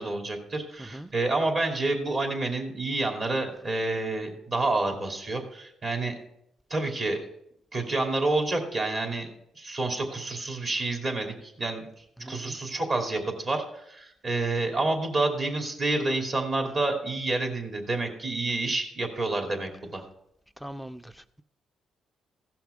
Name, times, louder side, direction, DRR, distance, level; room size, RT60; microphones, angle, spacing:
voice 1, 0.0-6.1 6.7-7.2 7.7-9.3 9.5-20.0, right 2 dB, 45° right, 2 dB, 2.6 m, -29 dB
voice 2, 0.8-1.1 12.2-12.6 20.6-21.4, right 1 dB, ahead, 12 dB, 0.4 m, -42 dB
15.5 x 5.8 x 5.0 m, 0.76 s
cardioid pair, 90°, 0 cm